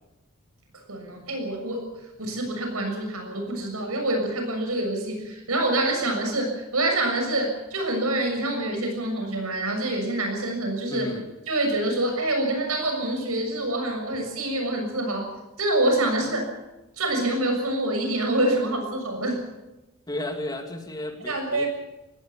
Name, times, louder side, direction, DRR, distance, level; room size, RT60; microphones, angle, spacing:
voice 1, 0.9-1.9 2.2-11.1 11.5-15.3 15.6-16.5 17.0-19.4 21.3-21.7, right 1 dB, 75° right, 4 dB, 6.8 m, -26 dB
voice 2, 10.9-11.2 20.1-21.6, left 1 dB, 15° left, 5 dB, 2.4 m, -33 dB
19.0 x 17.0 x 8.7 m, 1.0 s
head